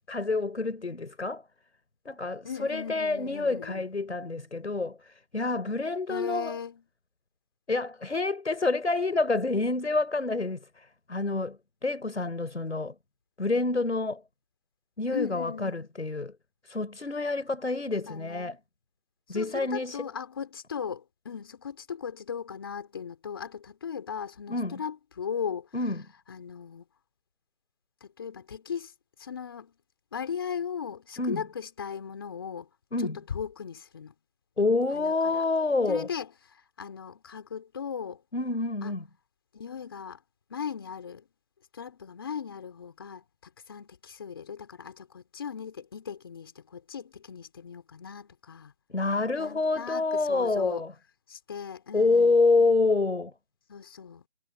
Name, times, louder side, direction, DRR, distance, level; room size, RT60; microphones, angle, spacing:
voice 1, 0.1-1.4 2.1-6.6 7.7-13.0 13.4-14.2 15.0-16.3 16.6-18.6 19.3-20.1 24.5-24.8 25.7-26.0 31.2-31.4 32.9-33.2 34.6-36.1 38.3-39.0 48.9-50.9 51.9-53.3, left 3 dB, 60° left, 6.0 m, -27 dB
voice 2, 2.4-3.9 6.1-6.8 15.1-15.9 17.9-18.6 19.3-25.7 26.3-26.9 28.0-28.9 29.2-29.8 30.1-32.7 33.3-34.1 34.9-35.4 35.9-38.2 38.8-38.9 39.5-40.2 40.5-41.2 41.7-48.7 49.4-50.8 51.3-52.4 53.7-54.2, left 7 dB, 20° left, 4.2 m, -38 dB
figure-of-eight pair, 170°, 38 cm